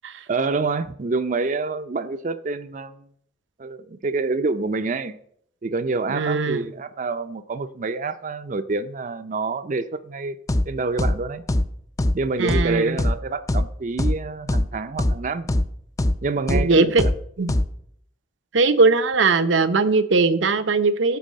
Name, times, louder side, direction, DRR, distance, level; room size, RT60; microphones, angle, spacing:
voice 1, 0.3-3.1 3.6-5.2 5.6-10.4 10.7-11.4 12.1-15.5 16.2-17.1, right 3 dB, 40° right, 0.5 m, -27 dB
voice 2, 6.1-6.7 12.4-13.0 16.5-17.0 17.4-17.5 18.5-21.2, right 3 dB, 80° right, 0.7 m, -19 dB
sound 1, 10.5-10.7 11.0-11.2 11.5-11.7 12.0-12.2 12.5-12.7 13.0-13.1 13.5-13.7 14.0-14.2 14.5-14.7 15.0-15.2 15.5-15.7 16.0-16.2 16.5-16.7 17.0-17.1 17.5-17.7, left 1 dB, 15° left, 0.4 m, -20 dB
11.5 x 4.9 x 7.3 m
head